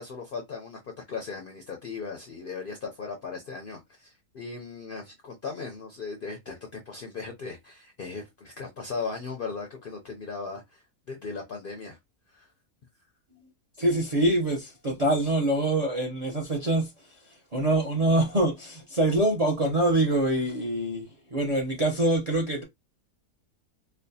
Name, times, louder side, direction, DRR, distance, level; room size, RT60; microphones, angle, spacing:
voice 1, 0.0-12.0 12.3-12.5, left 4 dB, 65° left, 0.5 m, -37 dB
voice 2, 13.8-16.9 17.5-21.1 21.3-22.6, right 1 dB, 45° right, 0.4 m, -24 dB
4.3 x 2.0 x 2.6 m
omnidirectional pair, 1.5 m